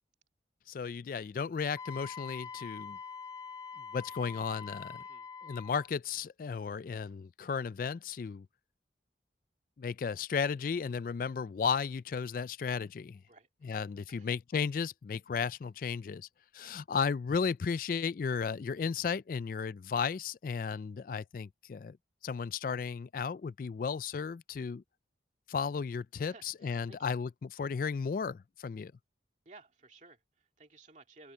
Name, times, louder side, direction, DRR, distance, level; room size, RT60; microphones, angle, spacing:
voice 1, 0.7-3.0 3.9-5.0 5.4-8.5 9.8-13.2 13.6-16.3 16.5-22.0 22.2-24.8 25.5-28.9, left 6 dB, 50° left, 0.3 m, -34 dB
Wind instrument woodwind instrument, 1.8-5.9, left 6 dB, 20° left, 1.3 m, -44 dB
voice 2, 5.0-5.3 13.3-13.8 14.1-14.3 16.6-16.7 26.2-27.0 29.5-31.3, right 3 dB, 40° right, 2.3 m, -57 dB
head